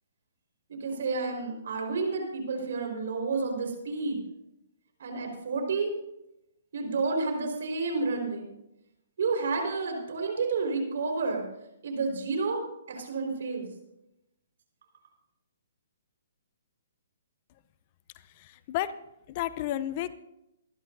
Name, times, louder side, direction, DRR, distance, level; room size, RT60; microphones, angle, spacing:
voice 1, 0.7-4.2 5.0-5.9 6.7-8.4 9.2-11.4 11.8-12.6 12.9-13.7, right 4 dB, 65° right, 3 dB, 4.6 m, -30 dB
voice 2, 18.4-18.9 19.3-20.1, left 13 dB, 40° left, 15 dB, 0.7 m, -31 dB
24.0 x 11.5 x 2.7 m, 0.86 s
hypercardioid pair, 140°, 0 cm